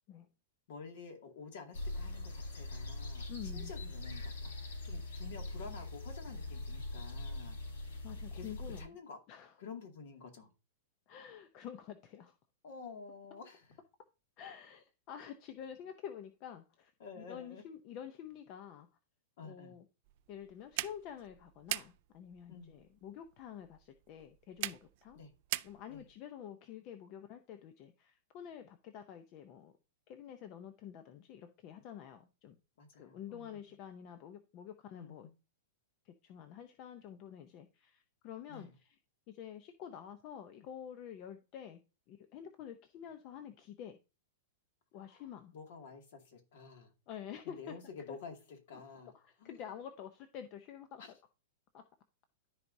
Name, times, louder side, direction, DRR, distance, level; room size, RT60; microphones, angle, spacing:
voice 1, 0.7-7.6 8.3-9.2 9.6-10.5 12.6-13.8 17.0-17.6 19.4-19.7 22.5-22.7 25.2-25.3 25.9-26.0 32.8-33.5 34.9-35.1 38.5-38.7 45.0-45.2 45.5-46.9 47.4-49.1 49.4-49.6 51.0-51.1, left 5 dB, 55° left, 2.2 m, -50 dB
sound 1, 1.7-8.8, left 2 dB, 85° left, 3.4 m, -42 dB
voice 2, 3.3-3.7 8.0-9.0 9.3-9.5 11.1-12.4 14.4-16.9 17.2-18.9 19.4-19.8 20.3-25.2 25.6-29.7 30.1-32.6 32.9-35.3 36.0-38.9 39.3-41.8 42.1-44.0 44.9-45.5 47.1-47.8 48.1-48.2 48.7-48.8 49.1-51.0 51.7-51.8, left 9 dB, 30° left, 0.6 m, -48 dB
sound 2, 20.0-26.2, right 18 dB, 40° right, 0.3 m, -43 dB
13.0 x 4.7 x 2.7 m
supercardioid pair, 165°, 0 cm